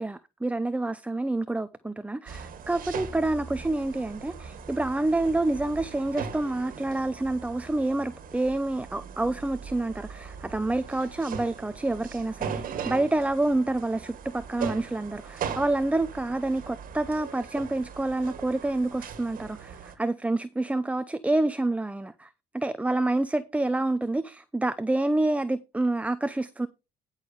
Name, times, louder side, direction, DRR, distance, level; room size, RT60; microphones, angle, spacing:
voice 1, 0.0-12.5 12.9-26.7, right 2 dB, 10° right, 0.6 m, -28 dB
sound 1, 2.3-19.9, right 7 dB, 55° right, 1.8 m, -39 dB
10.5 x 6.5 x 5.0 m
cardioid pair, 110°, 17 cm